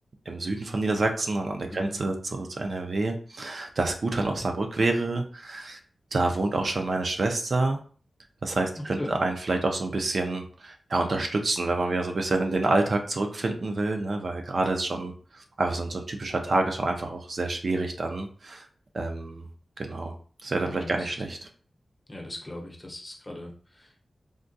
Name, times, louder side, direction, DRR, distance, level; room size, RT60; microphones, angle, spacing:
voice 1, 0.3-5.8 6.1-7.8 8.4-18.7 18.9-19.5 19.8-20.2 20.4-21.5, right 2 dB, 50° right, 3 dB, 0.4 m, -28 dB
voice 2, 20.7-21.1 22.1-24.0, left 1 dB, 20° left, -1 dB, 0.7 m, -39 dB
3.5 x 2.2 x 2.6 m, 0.43 s
wide cardioid pair, 135°, 0 cm